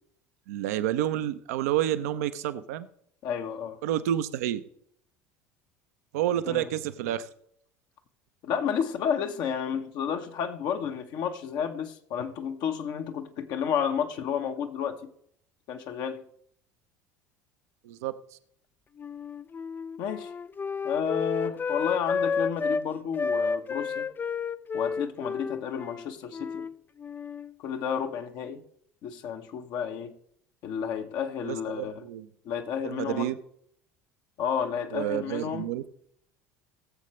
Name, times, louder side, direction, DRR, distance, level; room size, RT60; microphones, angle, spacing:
voice 1, 0.5-2.9 3.8-4.6 6.1-7.3 17.8-18.1 31.4-32.3 32.8-33.4 34.9-35.8, right 12 dB, 70° right, 0.7 m, -29 dB
voice 2, 3.2-3.8 6.4-6.7 8.4-15.1 15.7-16.2 20.0-20.3 20.8-24.1 24.7-26.7 27.6-28.6 29.0-30.1 30.6-32.0 32.4-33.3 34.4-35.7, left 7 dB, 55° left, 1.1 m, -31 dB
Wind instrument woodwind instrument, 19.0-22.9 23.2-26.7 27.0-27.5, left 5 dB, 25° left, 0.4 m, -31 dB
19.5 x 7.3 x 3.2 m
hypercardioid pair, 70°, 9 cm